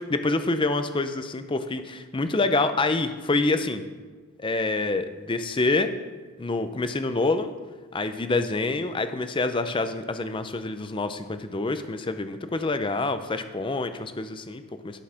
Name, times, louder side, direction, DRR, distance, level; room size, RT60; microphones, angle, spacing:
voice 1, 0.1-3.8 4.4-5.9 6.4-7.5 7.9-15.0, left 3 dB, 20° left, 10 dB, 0.5 m, -26 dB
10.0 x 6.3 x 5.6 m, 1.4 s
head